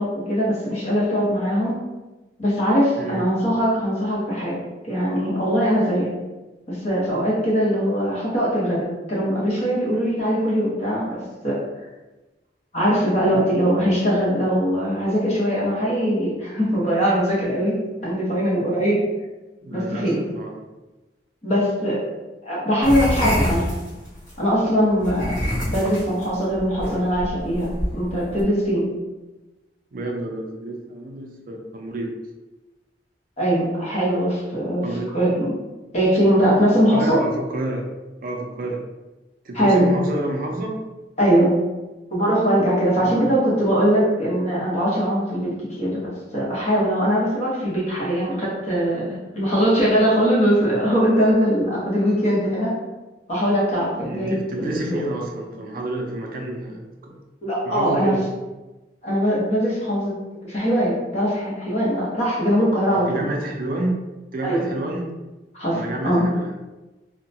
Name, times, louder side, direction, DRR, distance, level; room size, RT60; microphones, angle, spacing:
voice 1, 0.0-1.8 2.4-4.6 4.8-6.1 6.7-11.6 12.7-17.7 18.0-19.0 19.7-20.2 21.4-22.0 22.4-23.7 24.4-25.4 25.6-28.9 33.4-34.8 35.1-35.5 35.9-37.2 39.5-39.9 41.2-41.5 42.1-45.5 45.8-52.8 53.3-55.0 57.4-58.1 59.0-60.1 60.4-63.2 64.4-64.7 65.5-66.3, equal, 40° left, -6 dB, 1.0 m, -21 dB
voice 2, 19.6-20.6 29.9-32.1 34.8-35.1 36.9-37.9 38.2-38.8 39.4-40.8 43.0-43.2 54.0-57.2 57.7-58.2 63.1-65.1 65.7-66.5, right 1 dB, 55° right, 1 dB, 0.4 m, -29 dB
sound 1, 22.8-24.3 25.0-28.4, equal, 25° left, 1.3 m, -26 dB
2.8 x 2.1 x 2.7 m, 1.1 s
head